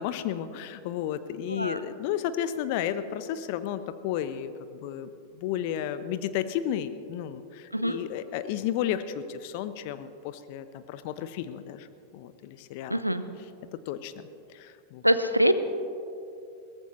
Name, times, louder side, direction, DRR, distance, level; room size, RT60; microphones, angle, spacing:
voice 1, 0.0-11.9 12.1-13.0 13.7-15.0, left 10 dB, 45° left, 12 dB, 0.8 m, -33 dB
voice 2, 12.9-13.2 15.0-15.5, equal, 90° right, 11 dB, 0.7 m, -24 dB
22.0 x 18.0 x 3.1 m, 2.6 s
figure-of-eight pair, 90°, 0 cm